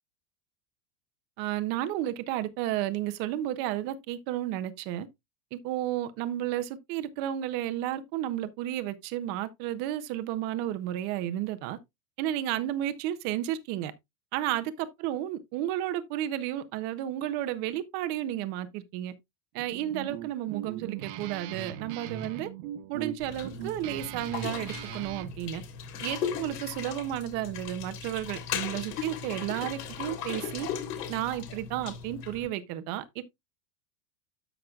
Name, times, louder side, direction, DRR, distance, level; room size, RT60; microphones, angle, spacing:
voice 1, 1.4-5.1 5.5-11.8 12.2-13.9 14.3-19.1 19.5-22.5 22.9-25.6 26.0-30.7 31.1-33.2, right 12 dB, 25° right, 0.4 m, -32 dB
Guitar, 19.6-25.4, right 10 dB, 45° right, 1.0 m, -40 dB
sound 1, 23.2-32.5, left 8 dB, 80° left, 3.0 m, -37 dB
12.5 x 5.9 x 2.3 m
supercardioid pair, 160°, 48 cm